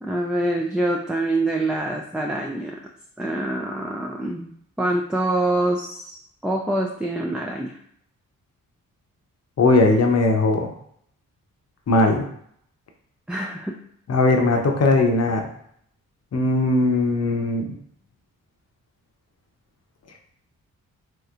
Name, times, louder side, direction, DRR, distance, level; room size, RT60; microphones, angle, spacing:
voice 1, 0.0-2.8 3.2-4.5 4.8-6.2 6.4-7.8 13.3-13.8 14.5-14.6, right 1 dB, 5° right, 0 dB, 0.3 m, -25 dB
voice 2, 9.6-10.7 11.9-12.2 14.1-15.5 16.3-17.8, left 2 dB, 45° left, 3 dB, 0.7 m, -19 dB
3.1 x 2.8 x 2.4 m, 0.67 s
supercardioid pair, 45°, 37 cm